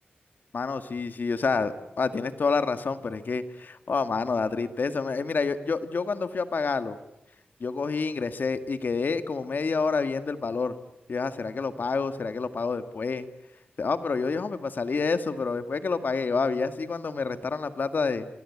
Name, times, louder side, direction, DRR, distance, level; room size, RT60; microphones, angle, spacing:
voice 1, 0.5-7.0 7.6-10.8 11.1-13.3 13.8-18.3, left 4 dB, 65° left, 11 dB, 1.7 m, -28 dB
26.5 x 25.5 x 8.5 m, 0.86 s
wide cardioid pair, 140°, 3 cm